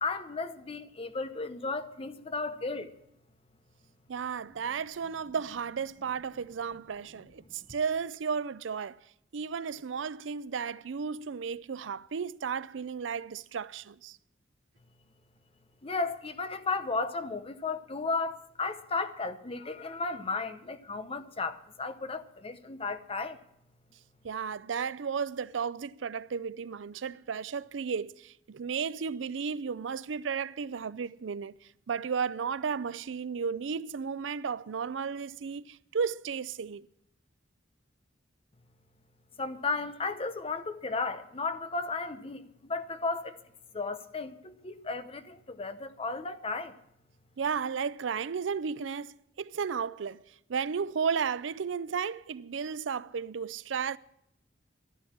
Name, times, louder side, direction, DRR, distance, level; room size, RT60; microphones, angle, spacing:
voice 1, 0.0-2.9 15.8-23.4 39.4-43.4 43.7-46.8, left 3 dB, 30° left, 0.8 m, -34 dB
voice 2, 4.1-9.0 9.3-14.2 24.2-31.6 31.9-36.9 47.4-50.2 50.5-54.0, right 6 dB, 85° right, 0.5 m, -34 dB
12.0 x 11.0 x 7.3 m
head